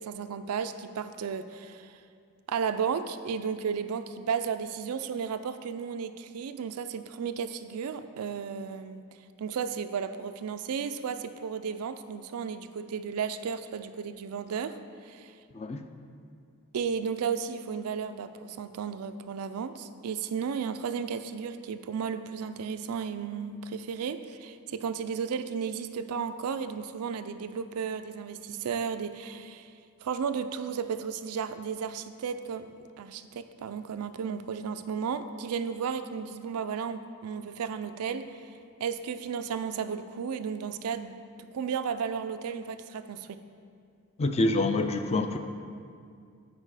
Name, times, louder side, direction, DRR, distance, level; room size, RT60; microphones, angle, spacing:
voice 1, 0.0-1.9 2.5-9.0 9.4-14.8 15.1-15.3 16.7-29.7 30.0-38.2 38.8-41.2 41.5-43.4, right 6 dB, 80° right, 10 dB, 0.4 m, -34 dB
voice 2, 44.2-45.4, left 2 dB, 30° left, 7 dB, 0.4 m, -26 dB
8.7 x 4.7 x 4.8 m, 2.3 s
head